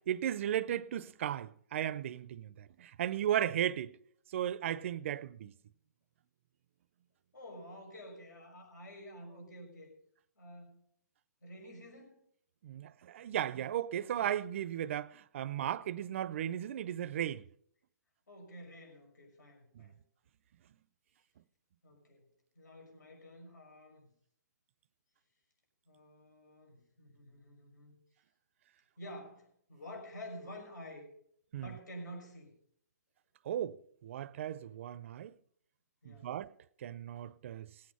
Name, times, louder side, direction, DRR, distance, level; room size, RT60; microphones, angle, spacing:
voice 1, 0.1-4.0 4.3-5.5 12.6-17.4 19.8-19.9 31.5-31.7 33.5-33.7 34.0-35.3 36.1-36.5 36.8-37.7, right 10 dB, 45° right, 0.5 m, -35 dB
voice 2, 7.3-9.9 10.4-10.8 11.4-12.2 18.3-19.9 21.8-22.3 22.6-24.0 25.9-27.9 29.0-31.0 31.5-32.5 36.0-36.3, equal, 80° left, 6.2 m, -50 dB
18.5 x 8.5 x 5.5 m
hypercardioid pair, 155°, 9 cm